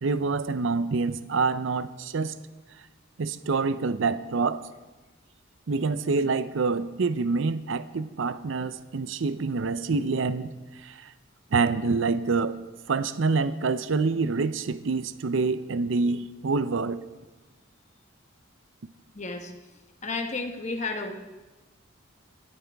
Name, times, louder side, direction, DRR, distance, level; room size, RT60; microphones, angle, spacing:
voice 1, 0.0-2.3 3.2-4.6 5.7-10.5 10.8-11.1 11.5-12.6 12.9-17.0, right 4 dB, 70° right, 13 dB, 0.5 m, -26 dB
voice 2, 19.1-19.5 20.0-21.1, left 3 dB, 35° left, 5 dB, 1.1 m, -32 dB
19.5 x 9.7 x 3.5 m, 1.2 s
head